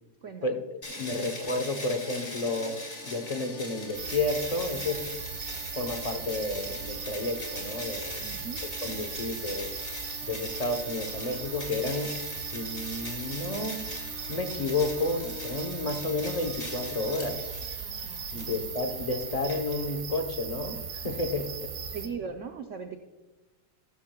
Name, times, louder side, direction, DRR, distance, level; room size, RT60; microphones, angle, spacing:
voice 1, 0.2-0.6 8.2-8.6 18.0-18.5 21.9-23.0, right 6 dB, 80° right, 6 dB, 0.6 m, -39 dB
sound 1, 0.8-20.2, left 2 dB, 30° left, 2.4 m, -41 dB
voice 2, 0.9-2.7 3.0-5.0 5.7-9.7 10.2-12.1 12.4-13.8 14.3-17.5 18.3-22.0, left 2 dB, 55° left, 6 dB, 0.4 m, -31 dB
sound 2, 3.9-22.1, right 6 dB, 60° right, 1.6 m, -38 dB
14.0 x 13.0 x 2.3 m, 1.2 s
omnidirectional pair, 2.2 m